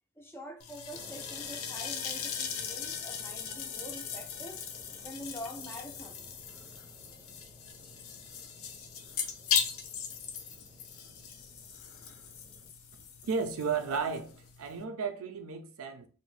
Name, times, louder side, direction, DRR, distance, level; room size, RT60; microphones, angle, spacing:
voice 1, 0.2-4.6 5.0-6.4, equal, 10° left, 0.3 m, -45 dB
sound 1, 0.6-14.8, left 7 dB, 80° left, 0.5 m, -38 dB
sound 2, 0.9-12.7, right 1 dB, 15° right, 0.7 m, -57 dB
voice 2, 13.2-16.1, right 5 dB, 85° right, 0.5 m, -34 dB
2.6 x 2.1 x 3.2 m
head